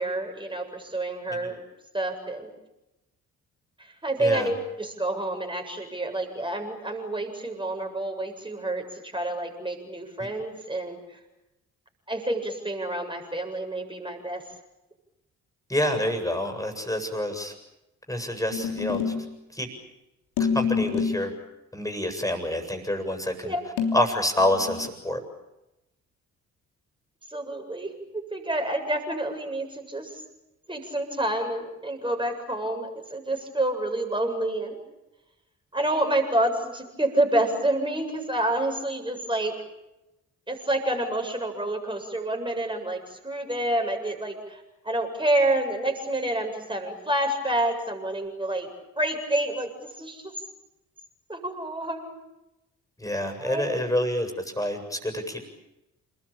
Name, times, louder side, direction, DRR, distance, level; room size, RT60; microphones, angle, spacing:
voice 1, 0.0-1.6 1.9-2.5 4.0-11.0 12.1-14.4 23.4-23.6 27.3-30.2 30.7-34.8 35.7-39.6 40.5-48.7 49.0-49.7 50.0-50.3 51.3-52.2 53.4-53.8, right 1 dB, 10° right, 3 dB, 7.8 m, -28 dB
voice 2, 4.2-4.5 10.2-10.3 15.7-17.5 18.1-19.1 19.5-19.7 20.4-21.3 21.7-23.5 23.9-25.2 53.0-55.4, left 1 dB, 10° left, 5 dB, 7.7 m, -27 dB
sound 1, 18.5-19.3 20.4-21.3 23.8-24.9, left 6 dB, 65° left, 3.6 m, -27 dB
30.0 x 21.0 x 8.9 m, 0.95 s
figure-of-eight pair, 40°, 41 cm